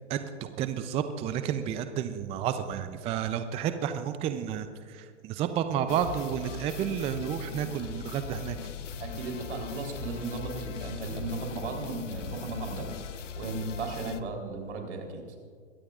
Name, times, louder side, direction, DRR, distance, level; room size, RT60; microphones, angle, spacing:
voice 1, 0.0-8.6, right 9 dB, 15° right, 10 dB, 0.5 m, -31 dB
sound 1, 5.9-14.2, left 7 dB, 80° left, 0.9 m, -40 dB
voice 2, 9.0-12.9 13.4-15.2, right 3 dB, 70° right, 2 dB, 3.7 m, -35 dB
22.0 x 16.5 x 2.5 m, 2.1 s
hypercardioid pair, 120°, 36 cm